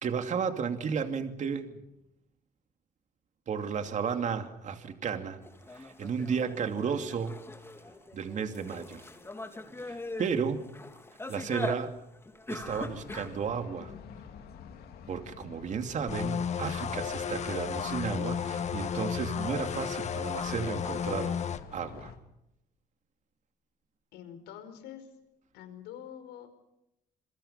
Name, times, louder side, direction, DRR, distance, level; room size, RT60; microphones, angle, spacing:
voice 1, 0.0-1.8 3.5-5.4 5.7-7.4 8.1-9.0 9.8-10.6 11.3-11.9 12.5-13.9 15.1-21.3 21.7-22.1, right 6 dB, 45° right, 6 dB, 2.6 m, -33 dB
sound 1, 5.4-13.5, left 2 dB, 15° left, 3.5 m, -41 dB
sound 2, 12.6-22.2, left 7 dB, 70° left, 3.3 m, -49 dB
sound 3, 16.1-21.6, left 7 dB, 40° left, 1.6 m, -33 dB
voice 2, 24.1-25.1 25.5-26.5, left 10 dB, 90° left, 9 dB, 5.0 m, -45 dB
28.0 x 23.0 x 5.7 m, 0.85 s
cardioid pair, 110°, 17 cm